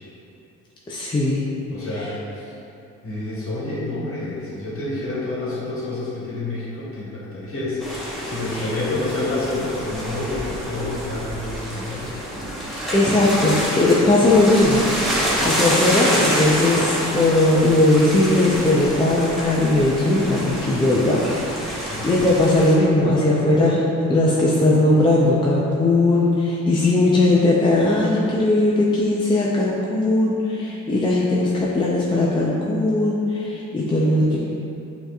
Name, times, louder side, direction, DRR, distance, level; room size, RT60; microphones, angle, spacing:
voice 1, 0.9-1.4 1.9-2.1 8.5-8.7 12.9-14.8 15.1-23.8 24.1-34.4, left 2 dB, 15° left, -5 dB, 0.4 m, -19 dB
voice 2, 1.7-2.5 3.0-12.2 21.8-22.0, left 2 dB, 45° left, -7 dB, 1.3 m, -28 dB
sound 1, 7.8-22.7, equal, ahead, 1.0 m, -27 dB
5.5 x 2.9 x 2.3 m, 2.7 s
cardioid pair, 90°, 30 cm